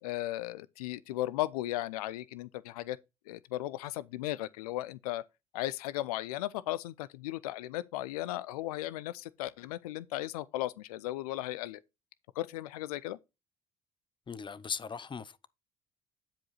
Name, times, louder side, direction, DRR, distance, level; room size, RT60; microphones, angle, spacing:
voice 1, 0.0-3.0 3.3-5.2 5.5-11.8 12.4-13.2, left 15 dB, 80° left, 0.4 m, -36 dB
voice 2, 14.3-15.5, left 6 dB, 25° left, 0.7 m, -39 dB
10.5 x 4.9 x 4.0 m
hypercardioid pair, 55°, 19 cm